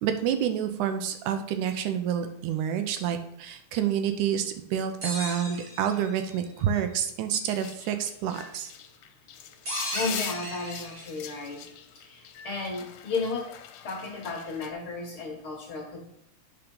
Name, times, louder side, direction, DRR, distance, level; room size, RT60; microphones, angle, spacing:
voice 1, 0.0-8.7, right 9 dB, 80° right, 8 dB, 2.1 m, -28 dB
sound 1, 5.0-6.3 9.7-11.2, right 1 dB, 35° right, 1.8 m, -35 dB
sound 2, 7.5-14.7, left 10 dB, 90° left, 2.2 m, -42 dB
voice 2, 9.9-11.7 12.0-13.4 13.8-16.0, left 3 dB, 55° left, 0 dB, 1.7 m, -33 dB
8.5 x 4.6 x 5.3 m, 0.73 s
omnidirectional pair, 3.6 m